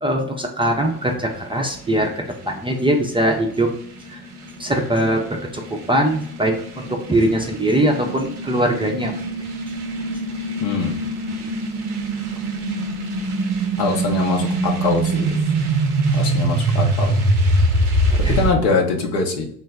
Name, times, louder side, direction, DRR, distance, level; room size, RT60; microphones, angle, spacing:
voice 1, 0.0-1.1 1.4-2.1 2.5-3.7 4.6-5.2 5.5-5.6 5.9-9.2 18.2-18.4, right 1 dB, 10° right, 1 dB, 0.5 m, -21 dB
sound 1, 0.7-18.5, right 2 dB, 85° right, 0.5 m, -24 dB
voice 2, 10.6-11.0 13.8-15.4 16.1-17.1 18.3-19.4, left 4 dB, 60° left, 0 dB, 0.9 m, -22 dB
3.8 x 2.0 x 3.4 m, 0.67 s
figure-of-eight pair, 45°, 43 cm